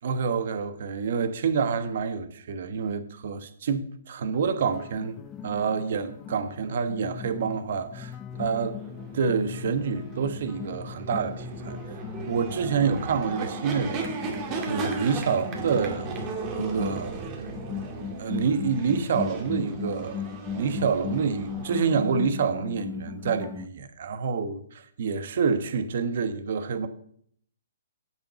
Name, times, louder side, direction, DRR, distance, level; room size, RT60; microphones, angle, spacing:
voice 1, 0.0-8.1 8.4-8.8 9.1-11.8 12.3-14.2 14.7-16.1 16.5-17.1 18.2-20.2 20.6-26.9, right 6 dB, 55° right, 1.3 m, -27 dB
sound 1, 4.3-23.7, left 8 dB, 20° left, 0.4 m, -38 dB
sound 2, 8.3-21.9, right 4 dB, 25° right, 2.1 m, -36 dB
8.3 x 6.5 x 6.8 m
hypercardioid pair, 150°, 0 cm